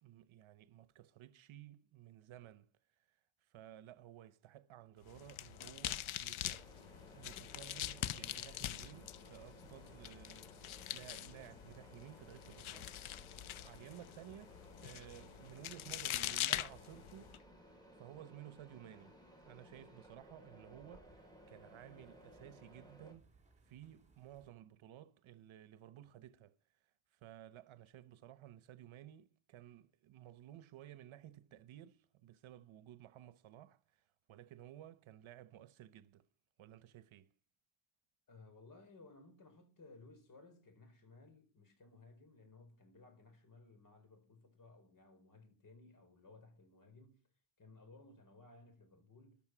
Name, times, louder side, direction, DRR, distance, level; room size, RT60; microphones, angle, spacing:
voice 1, 0.0-2.7 3.5-6.6 7.1-17.4 17.9-23.3 23.7-26.6 27.1-36.2 36.6-37.3, right 12 dB, 75° right, 1.1 m, -56 dB
sound 1, 4.8-24.5, right 4 dB, 15° right, 4.0 m, -71 dB
sound 2, 5.0-17.4, left 12 dB, 80° left, 0.9 m, -44 dB
Mechanisms, 6.4-23.1, equal, 10° left, 5.2 m, -60 dB
voice 2, 38.3-47.2 47.6-49.4, left 3 dB, 40° left, 4.6 m, -60 dB
14.5 x 12.0 x 6.1 m
wide cardioid pair, 145°, 48 cm